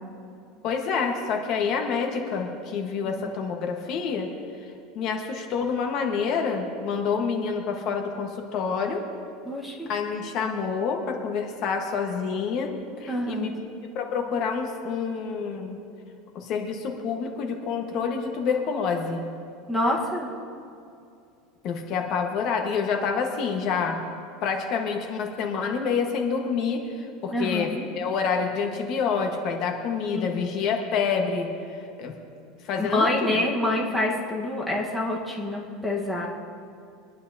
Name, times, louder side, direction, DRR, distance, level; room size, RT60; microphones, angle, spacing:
voice 1, 0.6-4.3 4.9-9.0 9.9-12.7 13.0-13.5 13.9-15.8 16.3-19.2 21.6-24.0 24.4-32.2 32.6-33.3, left 5 dB, 45° left, 3 dB, 1.4 m, -27 dB
voice 2, 9.4-9.9 13.1-13.5 19.7-20.3 27.3-27.9 30.1-30.3 32.8-36.3, left 1 dB, ahead, -4 dB, 1.4 m, -26 dB
23.5 x 10.5 x 2.8 m, 2.5 s
supercardioid pair, 150°, 0 cm